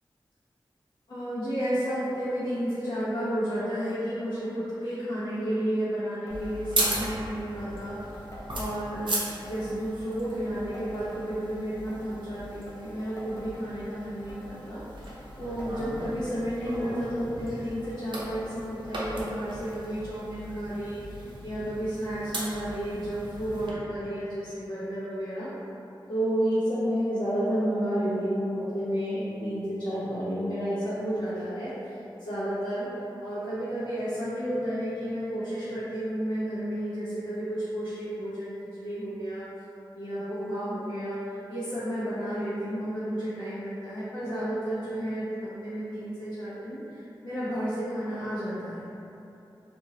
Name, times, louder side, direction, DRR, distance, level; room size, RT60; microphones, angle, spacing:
voice 1, 1.1-8.2 8.5-15.1 15.4-25.5 26.1-32.9 33.2-39.4 39.9-48.8, equal, 80° left, -16 dB, 1.0 m, -31 dB
sound 1, 6.3-6.4 6.6-6.7 7.0-7.4 7.8-9.1 9.4-9.8 10.2-11.6 11.9-12.2 12.6-14.0 14.3-14.7 15.0-16.4 16.7-17.1 17.5-18.0 18.2-18.3 18.6-18.7 19.5-19.6 20.3-20.4, left 1 dB, 35° left, 0.6 m, -48 dB
sound 2, 6.3-23.7, right 1 dB, 65° right, 0.6 m, -37 dB
2.7 x 2.6 x 3.0 m, 2.9 s
wide cardioid pair, 85°, 9 cm